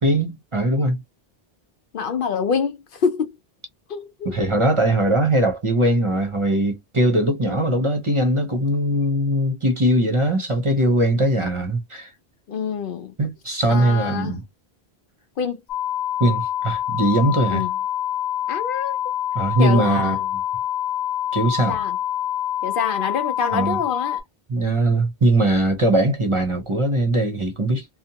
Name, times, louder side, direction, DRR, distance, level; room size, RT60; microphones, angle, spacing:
voice 1, 0.0-1.0 4.2-12.1 13.2-14.4 16.2-17.6 19.3-20.2 21.3-21.8 23.5-23.8 24.5-27.9, right 1 dB, 35° right, 0.7 m, -20 dB
voice 2, 1.9-3.3 3.9-4.4 12.5-13.1 13.7-14.4 15.4-15.6 17.5-17.7 18.5-19.0 19.6-20.3 21.7-22.0 22.6-24.2, left 6 dB, 60° left, 0.7 m, -26 dB
sound 1, 15.7-24.2, left 11 dB, 85° left, 1.0 m, -26 dB
2.8 x 2.1 x 2.8 m
omnidirectional pair, 1.0 m